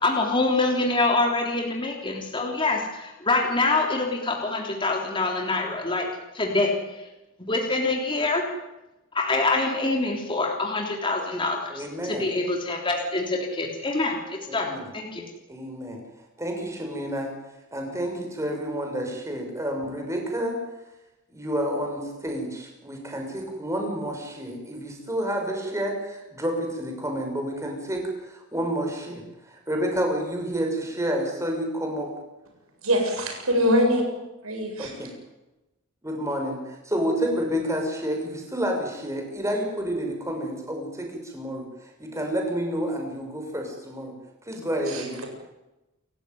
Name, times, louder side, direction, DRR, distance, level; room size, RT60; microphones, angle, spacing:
voice 1, 0.0-6.1 6.3-6.7 7.4-8.4 9.1-15.2, left 2 dB, 25° left, 1 dB, 3.4 m, -25 dB
voice 2, 11.7-12.3 14.5-14.9 15.5-16.0 16.4-17.3 17.7-20.6 21.3-32.1 34.8-35.1 36.0-44.1 44.5-45.3, equal, 15° right, 2 dB, 6.5 m, -29 dB
voice 3, 32.8-34.0 34.4-34.9 44.9-45.3, equal, 85° right, 3 dB, 7.5 m, -23 dB
29.0 x 15.5 x 9.4 m, 0.98 s
head